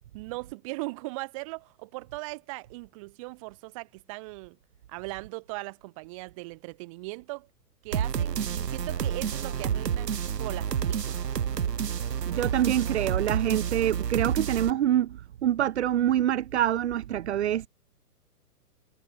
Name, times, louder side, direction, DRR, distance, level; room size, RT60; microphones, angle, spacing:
voice 1, 0.1-4.6 4.9-7.5 7.8-11.2, right 24 dB, 20° right, 1.3 m, -39 dB
sound 1, 7.9-14.7, right 8 dB, 85° right, 2.7 m, -29 dB
voice 2, 12.0-17.7, right 11 dB, 45° right, 0.9 m, -26 dB
hypercardioid pair, 165°, 47 cm